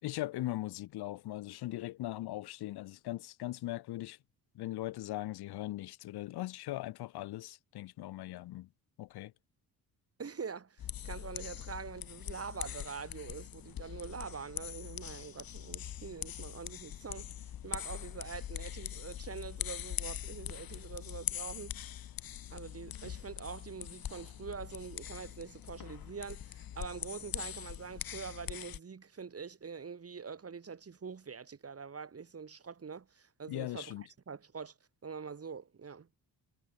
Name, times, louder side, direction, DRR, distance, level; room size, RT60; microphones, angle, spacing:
voice 1, 0.0-4.2 4.6-8.7 9.0-9.3 33.5-34.0, left 16 dB, 90° left, 5.4 m, -39 dB
voice 2, 10.2-21.8 22.5-34.7 35.0-36.1, right 5 dB, 40° right, 5.0 m, -44 dB
sound 1, 10.8-28.8, left 11 dB, 70° left, 5.4 m, -42 dB
cardioid pair, 80°, 37 cm